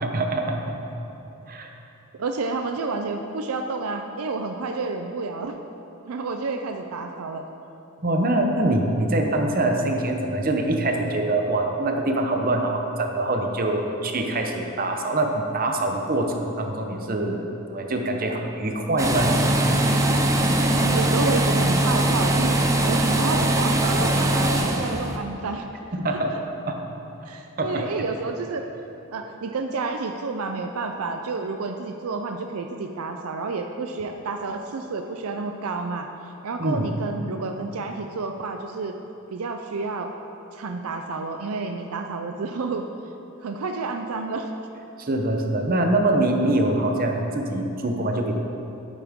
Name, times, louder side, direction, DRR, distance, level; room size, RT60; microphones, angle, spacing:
voice 1, 0.0-0.8 1.5-1.7 8.0-19.4 25.9-26.3 26.7-26.8 27.6-27.8 36.6-36.9 45.0-48.3, right 1 dB, 40° right, 3 dB, 0.8 m, -24 dB
voice 2, 2.1-5.6 6.0-7.4 20.8-25.7 27.3-28.6 29.1-36.1 36.4-38.9 39.3-40.1 40.5-42.9 43.4-44.5, right 3 dB, 80° right, 5 dB, 0.5 m, -30 dB
sound 1, 19.0-25.2, right 1 dB, 15° right, 0.5 m, -21 dB
11.0 x 9.2 x 3.6 m, 2.9 s
head